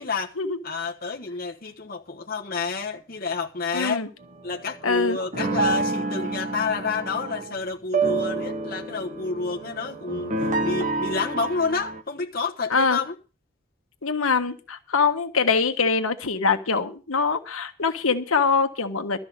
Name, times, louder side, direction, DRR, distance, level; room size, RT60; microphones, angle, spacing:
voice 1, 0.0-0.3 0.6-4.0 4.4-10.3 10.6-13.1, left 4 dB, 45° left, 1.2 m, -29 dB
voice 2, 3.7-4.1 4.8-5.2 12.7-13.0 14.0-19.2, left 4 dB, 80° left, 1.4 m, -23 dB
sound 1, 4.2-7.6 7.9-12.0, right 3 dB, 35° right, 1.4 m, -28 dB
13.0 x 5.8 x 8.9 m
head